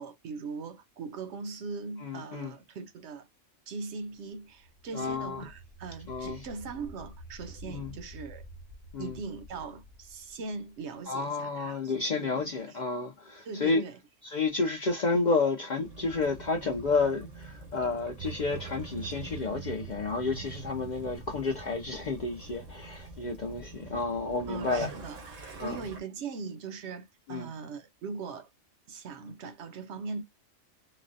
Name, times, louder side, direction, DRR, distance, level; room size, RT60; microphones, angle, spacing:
voice 1, 0.0-3.3 3.7-8.4 9.0-12.8 13.4-14.0 24.5-28.5 28.9-30.2, right 4 dB, 70° right, 0.8 m, -40 dB
voice 2, 2.0-2.5 4.9-5.4 6.1-6.4 7.7-8.0 8.9-9.2 11.1-13.8 14.2-24.9 25.6-25.8 27.3-27.5, left 3 dB, 55° left, 0.5 m, -31 dB
sound 1, 4.3-11.2, equal, ahead, 0.6 m, -49 dB
Waves surf / Splash splatter / Trickle dribble, 15.8-26.0, right 3 dB, 90° right, 1.4 m, -46 dB
sound 2, 18.2-23.7, right 9 dB, 50° right, 0.4 m, -45 dB
3.9 x 2.1 x 2.5 m
omnidirectional pair, 1.3 m